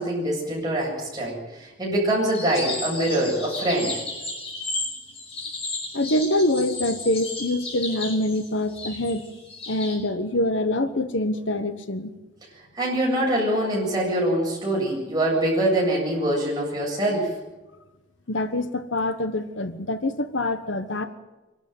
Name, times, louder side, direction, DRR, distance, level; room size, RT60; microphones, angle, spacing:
voice 1, 0.0-3.9 12.8-17.3, right 1 dB, 20° right, -3 dB, 7.9 m, -24 dB
sound 1, 2.3-10.0, left 3 dB, 30° left, 6.1 m, -33 dB
voice 2, 5.9-9.2 9.7-12.1 18.3-21.1, left 1 dB, 75° left, 10 dB, 1.3 m, -25 dB
25.5 x 12.5 x 9.4 m, 1.1 s
head